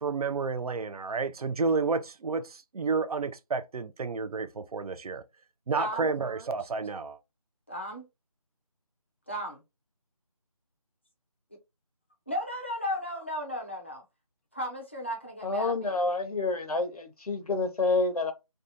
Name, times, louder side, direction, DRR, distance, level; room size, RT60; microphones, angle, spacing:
voice 1, 0.0-5.2 5.7-7.2, right 4 dB, 75° right, 0.4 m, -30 dB
voice 2, 5.7-6.1 7.7-8.1 9.3-9.6 12.3-14.0 14.5-16.0, equal, 20° left, 0.4 m, -35 dB
voice 3, 15.4-18.3, left 3 dB, 80° left, 0.8 m, -28 dB
2.6 x 2.3 x 2.6 m
figure-of-eight pair, 170°, 19 cm